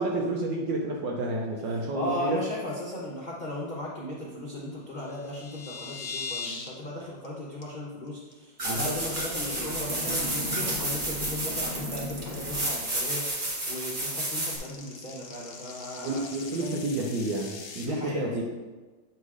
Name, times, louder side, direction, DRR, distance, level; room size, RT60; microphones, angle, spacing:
voice 1, 0.0-2.4 8.6-9.0 16.0-18.4, right 2 dB, 70° right, -1 dB, 1.3 m, -30 dB
voice 2, 1.9-16.2 16.6-17.1 17.8-18.4, left 1 dB, 90° left, -5 dB, 0.4 m, -37 dB
sound 1, 5.0-6.7 7.0-7.3 7.6-7.7 8.1-8.3 8.7-9.1 9.5-17.8, left 4 dB, 60° left, 1.5 m, -41 dB
sound 2, 8.6-14.6, right 1 dB, 35° right, 0.8 m, -31 dB
8.1 x 3.0 x 4.8 m, 1.3 s
omnidirectional pair, 2.3 m